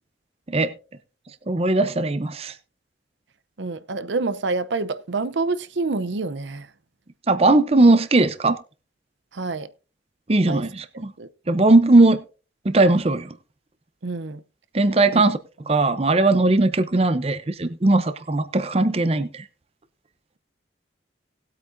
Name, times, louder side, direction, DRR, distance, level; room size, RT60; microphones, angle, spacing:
voice 1, 1.5-2.5 7.3-8.6 10.3-11.1 11.5-12.2 12.6-13.3 14.7-15.4 15.7-19.4, right 2 dB, 35° right, 0.7 m, -18 dB
voice 2, 3.6-6.7 9.3-9.7 10.5-10.6 11.2-11.3 14.0-14.4 15.1-15.2, right 3 dB, 80° right, 0.7 m, -27 dB
19.0 x 8.5 x 2.6 m
head